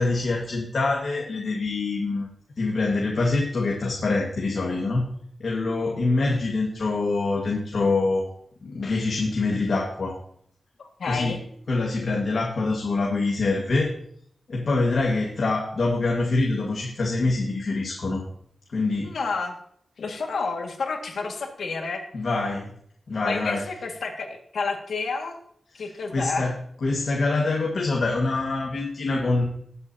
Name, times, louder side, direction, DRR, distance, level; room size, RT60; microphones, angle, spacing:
voice 1, 0.0-2.3 2.6-5.0 5.4-8.3 8.6-10.2 11.1-11.3 11.7-13.9 14.5-18.2 18.7-19.1 22.1-22.7 23.1-23.6 26.1-26.5 26.8-29.4, left 3 dB, 55° left, -1 dB, 1.7 m, -25 dB
voice 2, 10.8-11.4 19.0-19.5 20.0-22.0 23.2-25.4 25.8-26.5, left 4 dB, 85° left, 3 dB, 1.9 m, -30 dB
19.5 x 8.2 x 2.8 m, 0.66 s
wide cardioid pair, 160°, 0 cm